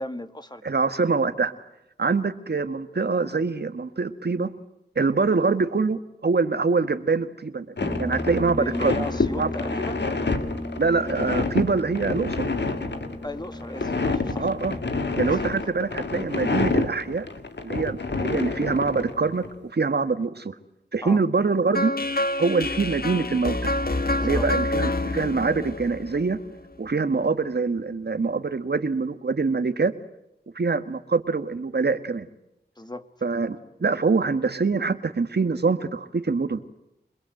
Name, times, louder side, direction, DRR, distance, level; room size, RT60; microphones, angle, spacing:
voice 1, 0.0-0.6 8.6-10.1 13.2-14.5 15.2-15.4 21.0-21.2 24.2-24.5 32.8-33.1, left 1 dB, 25° left, 9 dB, 1.9 m, -35 dB
voice 2, 0.6-1.5 2.0-4.5 5.0-7.7 8.0-9.0 9.4-9.5 10.8-12.5 14.4-14.7 15.2-17.3 17.6-20.6 20.9-21.9 22.4-23.7 24.2-26.4 26.8-29.9 30.6-32.3 33.2-36.6, right 4 dB, 65° right, 10 dB, 1.6 m, -24 dB
sound 1, 7.8-19.5, left 3 dB, 75° left, 2.2 m, -28 dB
Brass instrument, 7.8-15.3, left 1 dB, 5° left, 0.9 m, -35 dB
sound 2, 21.7-26.7, left 2 dB, 55° left, 1.8 m, -27 dB
27.5 x 21.0 x 7.9 m, 0.82 s
wide cardioid pair, 45°, 18 cm